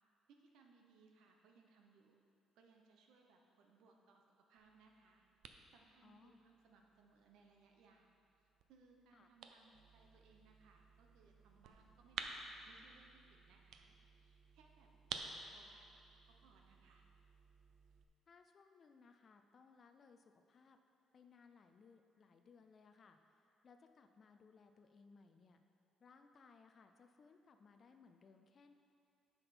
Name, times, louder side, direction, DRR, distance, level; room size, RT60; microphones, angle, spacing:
voice 1, 0.3-2.2 2.5-5.2 5.7-8.1 8.7-12.3 12.6-15.9 16.3-17.0, right 4 dB, 90° right, 2 dB, 0.9 m, -68 dB
sound 1, 4.6-18.0, right 5 dB, 60° right, 0.5 m, -54 dB
voice 2, 6.0-6.4 9.1-9.3 18.3-20.8 21.1-25.6 26.0-28.7, left 5 dB, 30° left, 6 dB, 0.3 m, -65 dB
9.9 x 5.8 x 4.3 m, 2.6 s
cardioid pair, 180°, 0 cm